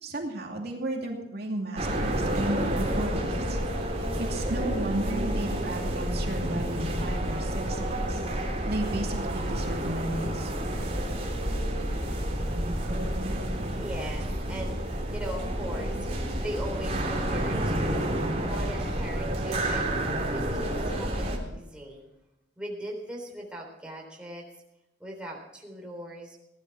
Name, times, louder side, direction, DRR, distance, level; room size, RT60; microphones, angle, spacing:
voice 1, 0.0-3.6 3.9-8.2 8.7-10.5, right 1 dB, 60° right, 0 dB, 2.6 m, -34 dB
sound 1, 1.8-21.4, right 1 dB, 35° right, 3.2 m, -29 dB
voice 2, 13.1-19.9 20.3-22.1 22.6-24.5 25.0-26.4, equal, 5° right, -1 dB, 3.7 m, -40 dB
18.0 x 12.0 x 4.8 m, 0.88 s
head